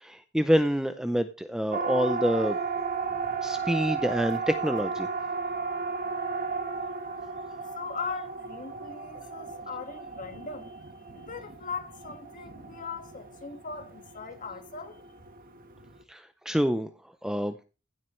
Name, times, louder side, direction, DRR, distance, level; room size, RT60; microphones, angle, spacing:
voice 1, 0.0-2.6 3.4-5.1 16.1-16.9 17.2-17.5, equal, 5° right, 0.5 m, -27 dB
Siren, 1.7-16.0, right 5 dB, 40° right, 1.3 m, -35 dB
voice 2, 7.7-15.0, left 5 dB, 40° left, 1.7 m, -39 dB
15.5 x 7.6 x 3.1 m
head